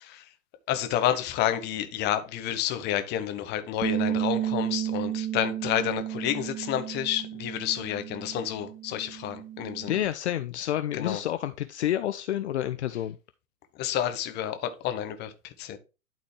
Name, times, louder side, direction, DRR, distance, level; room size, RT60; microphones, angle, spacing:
voice 1, 0.7-9.9 10.9-11.2 13.7-15.8, left 11 dB, 25° left, 1.1 m, -30 dB
Bass guitar, 3.8-10.1, right 11 dB, 25° right, 1.2 m, -32 dB
voice 2, 9.9-13.2, left 12 dB, 55° left, 0.6 m, -29 dB
12.0 x 4.2 x 3.3 m
figure-of-eight pair, 110°, 41 cm